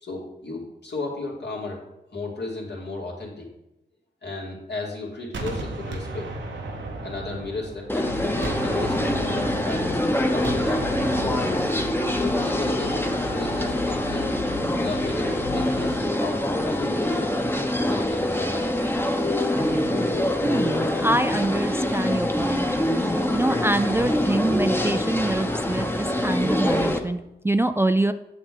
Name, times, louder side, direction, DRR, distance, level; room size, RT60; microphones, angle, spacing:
voice 1, 0.0-1.8 2.1-3.5 4.2-6.3 7.0-8.4 8.6-10.0 10.3-10.9 11.2-11.9 12.4-14.3 14.8-17.3 17.8-18.9, left 3 dB, 65° left, -2 dB, 2.5 m, -34 dB
Gunshot gunfire, 5.3-8.0 8.4-12.0, right 2 dB, 80° right, 1.0 m, -34 dB
sound 1, 7.9-27.0, left 1 dB, 10° left, 1.0 m, -25 dB
sound 2, 8.0-16.0, left 5 dB, 80° left, 0.8 m, -36 dB
voice 2, 20.4-28.1, right 1 dB, 15° right, 10 dB, 0.3 m, -25 dB
8.0 x 6.1 x 3.8 m, 0.91 s
cardioid pair, 40°, 19 cm